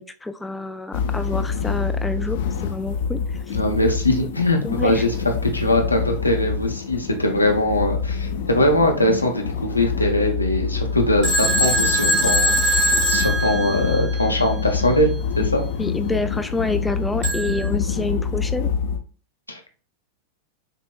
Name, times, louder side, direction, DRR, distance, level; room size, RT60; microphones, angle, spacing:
voice 1, 0.0-3.2 3.5-3.6 4.6-5.1 15.8-18.7, left 2 dB, 10° left, 8 dB, 0.3 m, -28 dB
sound 1, 0.9-19.0, left 6 dB, 55° left, 0.6 m, -26 dB
voice 2, 3.5-5.1 5.4-15.1 15.4-15.6 19.5-19.8, left 1 dB, 85° left, 2 dB, 0.9 m, -21 dB
Telephone, 11.2-14.3 17.2-17.7, equal, 45° right, 1.4 m, -21 dB
6.6 x 3.0 x 2.4 m, 0.40 s
figure-of-eight pair, 90°, 0 cm